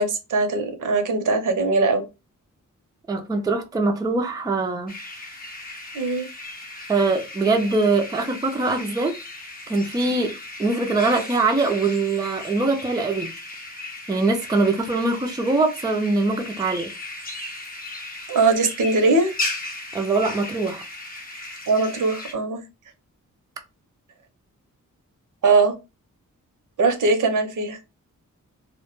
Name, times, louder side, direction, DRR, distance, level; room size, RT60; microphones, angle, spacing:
voice 1, 0.0-2.0 5.9-6.3 18.3-19.3 21.7-22.6 25.4-25.7 26.8-27.8, right 3 dB, 70° right, 0.7 m, -20 dB
voice 2, 3.1-4.9 6.9-9.1 9.7-10.3 10.6-13.3 14.1-16.9 19.9-20.8, right 3 dB, 10° right, 0.3 m, -22 dB
sound 1, 4.9-22.3, left 2 dB, 30° left, 0.6 m, -36 dB
2.1 x 2.1 x 2.9 m
wide cardioid pair, 115°, 32 cm